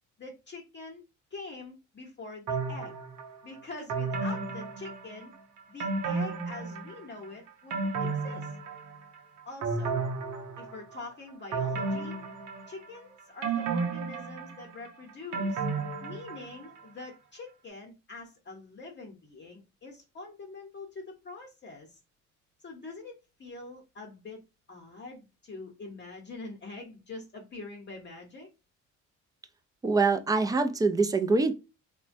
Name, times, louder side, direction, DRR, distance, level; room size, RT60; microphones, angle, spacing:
voice 1, 0.2-1.0 1.3-3.0 3.4-5.3 5.7-8.5 9.4-10.0 10.6-12.2 12.7-15.6 16.0-22.0 22.6-24.4 24.7-28.5, left 3 dB, 35° left, 0.8 m, -44 dB
sound 1, 2.5-3.3 3.9-5.3 5.8-7.1 7.5-9.1 9.6-10.9 11.5-13.0 13.4-16.7 17.0-17.1, right 4 dB, 90° right, 0.7 m, -33 dB
voice 2, 29.8-31.5, right 3 dB, 15° right, 0.3 m, -24 dB
3.1 x 2.2 x 2.5 m
cardioid pair, 90°, 30 cm